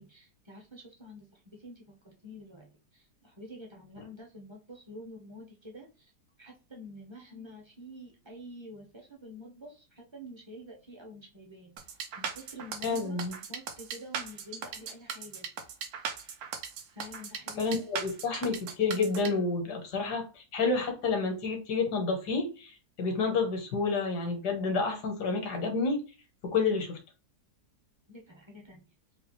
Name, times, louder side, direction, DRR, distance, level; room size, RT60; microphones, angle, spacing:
voice 1, 0.0-6.1 6.4-11.7 12.2-13.2 13.5-15.5 16.9-17.7 28.1-28.8, equal, 30° right, 0.5 m, -48 dB
sound 1, 11.8-19.3, right 7 dB, 70° right, 1.1 m, -38 dB
voice 2, 12.8-13.3 17.6-26.0 26.4-27.0, left 4 dB, 75° left, 1.5 m, -29 dB
4.1 x 2.3 x 3.0 m
omnidirectional pair, 1.8 m